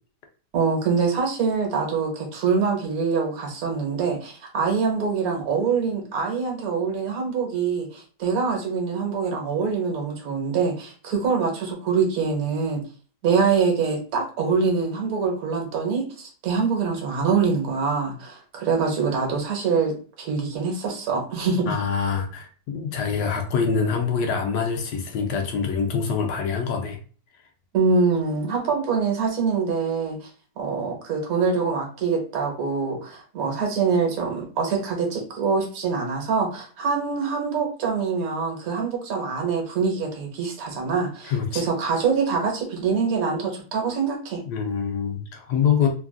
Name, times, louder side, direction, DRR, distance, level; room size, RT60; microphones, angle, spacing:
voice 1, 0.5-12.8 13.2-21.8 27.7-30.2 30.6-44.4, right 5 dB, 60° right, 1 dB, 1.3 m, -24 dB
voice 2, 21.7-27.0 41.2-41.6 44.5-45.9, left 6 dB, 75° left, 3 dB, 1.2 m, -25 dB
3.3 x 2.4 x 2.3 m, 0.39 s
omnidirectional pair, 1.9 m